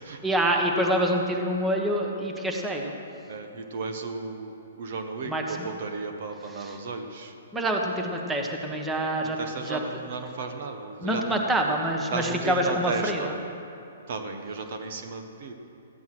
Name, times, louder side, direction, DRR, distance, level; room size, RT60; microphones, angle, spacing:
voice 1, 0.2-2.9 5.3-5.7 6.5-6.8 7.5-9.4 9.7-9.8 11.0-13.3, right 1 dB, 10° right, 1 dB, 1.3 m, -26 dB
voice 2, 3.3-7.3 9.2-11.4 12.1-13.3 14.1-15.5, right 4 dB, 55° right, 5 dB, 1.2 m, -34 dB
14.0 x 9.4 x 6.1 m, 2.8 s
hypercardioid pair, 135°, 0 cm